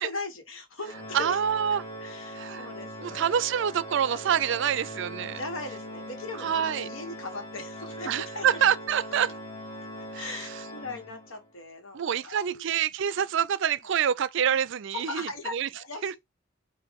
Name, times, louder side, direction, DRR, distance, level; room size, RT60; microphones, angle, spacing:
voice 1, 0.0-1.4 2.0-3.2 4.3-4.7 5.2-8.6 9.8-12.8 14.9-16.2, left 3 dB, 75° left, 1.4 m, -39 dB
Organ, 0.8-11.5, equal, 40° left, 1.6 m, -41 dB
voice 2, 1.1-1.8 2.4-2.7 3.0-5.4 6.4-6.9 8.1-9.3 10.1-10.4 11.9-15.7 16.0-16.1, right 8 dB, 60° right, 0.4 m, -26 dB
5.1 x 2.6 x 3.5 m
head